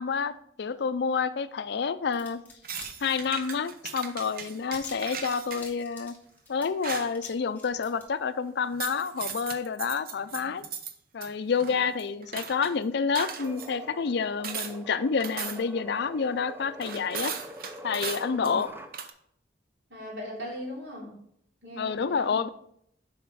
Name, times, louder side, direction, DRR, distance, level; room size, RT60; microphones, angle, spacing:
voice 1, 0.0-2.4 3.0-6.1 6.5-10.6 11.1-17.3 17.8-18.7 21.8-22.5, left 5 dB, 65° left, 13 dB, 0.4 m, -29 dB
sound 1, 2.1-2.9 3.1-3.8 4.0-4.1 4.3-7.3 7.5-8.0, left 3 dB, 10° left, 1.9 m, -46 dB
sound 2, 2.6-5.7 6.8-7.2 8.7-10.9 11.2-12.7 13.2-13.7 14.4-14.7 15.2-15.8 16.8-18.6 18.9-19.1, right 7 dB, 55° right, 0.7 m, -37 dB
sound 3, 13.2-18.9, equal, 10° right, 0.6 m, -45 dB
voice 2, 19.9-21.1 21.6-22.4, left 1 dB, 85° right, -3 dB, 3.0 m, -39 dB
7.1 x 5.1 x 4.7 m, 0.69 s
head